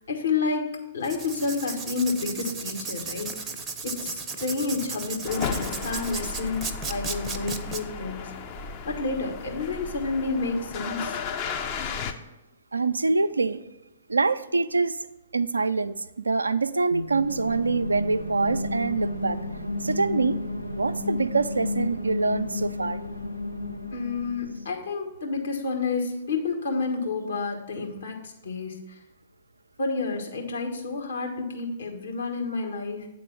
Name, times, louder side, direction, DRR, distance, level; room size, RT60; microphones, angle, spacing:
voice 1, 0.1-3.3 3.8-8.3 8.8-11.2 23.9-29.0 29.8-33.1, left 4 dB, 65° left, 1.5 m, -30 dB
Writing, 1.0-7.8, right 4 dB, 15° right, 0.6 m, -35 dB
sound 1, 5.2-12.1, left 5 dB, 30° left, 0.6 m, -34 dB
voice 2, 12.7-13.6 14.1-15.0 15.3-15.9 16.2-19.4 19.8-20.4 20.7-23.0, right 3 dB, 75° right, 0.4 m, -25 dB
sound 2, 16.9-24.7, left 2 dB, 85° left, 0.7 m, -32 dB
8.9 x 3.8 x 7.0 m
figure-of-eight pair, 115°, 0 cm